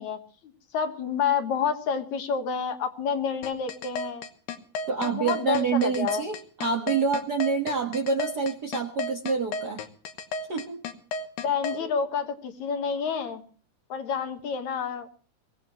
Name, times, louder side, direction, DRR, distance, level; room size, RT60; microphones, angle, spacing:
voice 1, 0.0-4.3 5.0-6.2 11.4-13.4 13.9-15.1, left 6 dB, 60° left, 7 dB, 2.4 m, -29 dB
sound 1, 3.4-11.8, left 3 dB, 85° left, 2.9 m, -33 dB
voice 2, 4.9-9.8 10.5-10.8 11.8-11.9, right 5 dB, 75° right, 1 dB, 0.9 m, -27 dB
23.5 x 17.0 x 3.0 m, 0.43 s
omnidirectional pair, 4.1 m